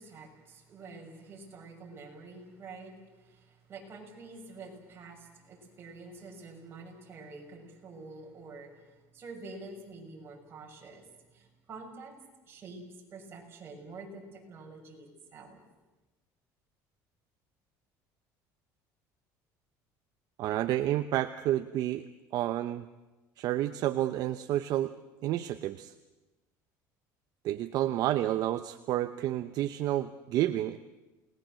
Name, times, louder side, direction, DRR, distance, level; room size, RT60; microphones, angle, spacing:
voice 1, 0.0-12.1 12.4-12.8 13.1-15.6, right 3 dB, 30° right, 0 dB, 6.5 m, -47 dB
voice 2, 20.4-22.1 22.3-22.9 23.4-24.9 25.2-25.9 27.4-30.8, right 13 dB, 55° right, 10 dB, 0.8 m, -30 dB
29.0 x 19.5 x 7.7 m, 1.1 s
cardioid pair, 140°, 8 cm